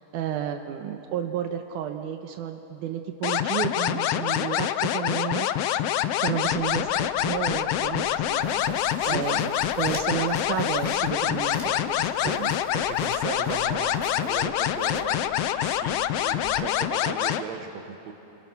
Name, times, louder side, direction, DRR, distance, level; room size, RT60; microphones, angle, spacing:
voice 1, 0.0-5.5 6.2-8.8 9.1-12.5, right 9 dB, 85° right, 6 dB, 2.4 m, -32 dB
sound 1, 3.2-17.4, left 11 dB, 90° left, 1.3 m, -26 dB
sound 2, 6.5-16.6, equal, 10° left, 4.1 m, -46 dB
voice 2, 9.0-9.4 12.1-12.4 12.7-18.1, right 7 dB, 65° right, 6 dB, 2.5 m, -37 dB
29.5 x 25.5 x 5.9 m, 2.9 s
omnidirectional pair, 3.6 m